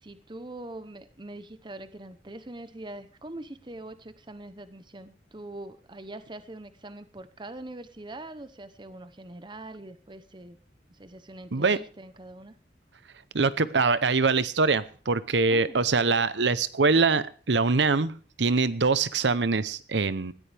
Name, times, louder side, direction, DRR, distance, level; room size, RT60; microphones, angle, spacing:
voice 1, 0.0-10.6 10.9-12.6 15.5-15.9, right 1 dB, 25° right, 11 dB, 0.9 m, -43 dB
voice 2, 13.3-20.3, right 4 dB, 80° right, 15 dB, 0.8 m, -24 dB
19.0 x 14.0 x 3.5 m, 0.40 s
head